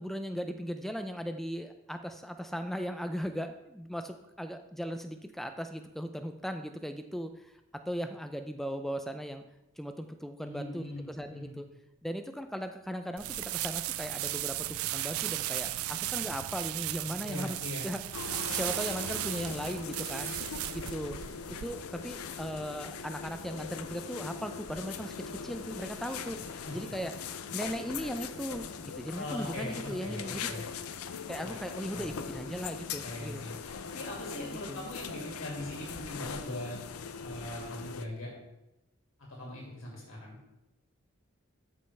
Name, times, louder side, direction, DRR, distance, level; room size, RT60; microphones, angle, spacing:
voice 1, 0.0-9.4 9.8-11.7 12.0-18.0 18.5-20.3 20.7-21.2 21.6-25.1 25.4-26.4 26.7-27.1 27.5-30.6 31.3-33.4 34.4-34.9, equal, ahead, 7 dB, 0.4 m, -38 dB
voice 2, 10.4-11.6 17.2-17.9 26.3-26.9 29.1-30.6 31.4-31.6 31.9-32.2 33.0-36.8 37.2-38.3 39.4-40.4, left 1 dB, 70° left, -3 dB, 2.3 m, -41 dB
sound 1, 13.2-21.6, right 15 dB, 80° right, 0.3 m, -36 dB
sound 2, 18.1-38.1, left 6 dB, 90° left, 0.6 m, -41 dB
13.0 x 5.4 x 3.3 m, 0.91 s
head